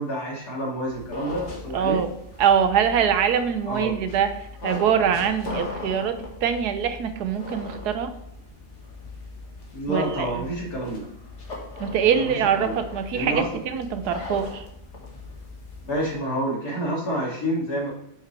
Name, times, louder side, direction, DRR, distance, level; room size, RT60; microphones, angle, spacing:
voice 1, 0.0-2.0 3.7-3.9 9.7-11.1 12.1-12.8 13.1-13.4 15.8-17.9, right 1 dB, 75° left, -5 dB, 3.1 m, -28 dB
sound 1, 0.9-16.1, left 2 dB, 45° left, 2.1 m, -39 dB
voice 2, 1.7-2.1 2.4-8.1 9.9-10.4 11.8-14.6, right 8 dB, 85° right, 10 dB, 1.4 m, -23 dB
9.4 x 6.6 x 3.3 m, 0.77 s
omnidirectional pair, 1.7 m